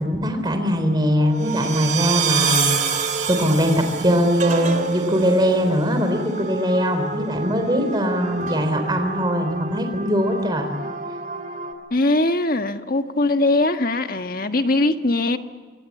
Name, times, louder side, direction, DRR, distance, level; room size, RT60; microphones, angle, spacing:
voice 1, 0.0-10.7, equal, 25° right, 6 dB, 3.7 m, -21 dB
sound 1, 1.2-11.7, right 5 dB, 45° right, 3.3 m, -27 dB
voice 2, 11.9-15.4, left 2 dB, 50° left, 7 dB, 1.5 m, -21 dB
25.5 x 25.5 x 8.4 m, 1.5 s
head